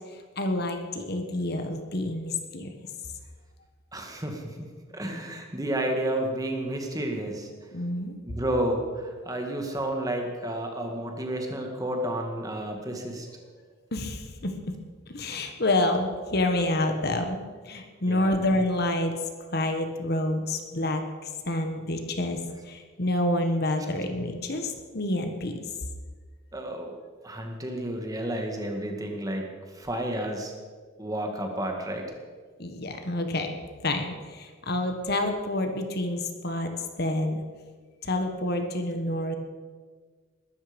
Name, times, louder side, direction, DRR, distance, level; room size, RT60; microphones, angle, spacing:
voice 1, 0.4-2.7 7.7-8.1 13.9-14.5 15.1-19.1 19.5-22.4 22.6-25.6 32.6-33.5 33.8-36.7 37.0-37.4 38.0-39.3, left 1 dB, 50° left, 6 dB, 1.5 m, -28 dB
voice 2, 3.9-4.6 4.9-7.5 8.3-13.3 18.1-18.4 26.5-26.9 27.2-29.5 29.7-30.5 31.0-32.1, right 1 dB, 15° right, 3 dB, 1.9 m, -31 dB
21.0 x 12.5 x 5.3 m, 1.6 s
head